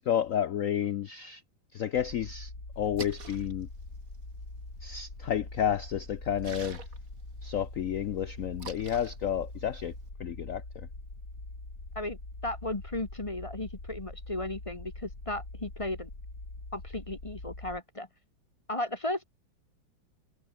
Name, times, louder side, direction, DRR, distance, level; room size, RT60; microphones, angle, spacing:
voice 1, 0.0-1.4 1.7-3.7 4.8-6.8 7.4-9.9 10.2-10.9, left 9 dB, 75° left, 0.7 m, -31 dB
sound 1, 2.0-17.8, left 2 dB, 40° left, 6.4 m, -44 dB
Splash splatter, 2.7-10.1, right 5 dB, 40° right, 2.6 m, -49 dB
voice 2, 12.4-16.1 16.7-18.1 18.7-19.2, left 1 dB, 20° left, 1.2 m, -35 dB
omnidirectional pair, 2.2 m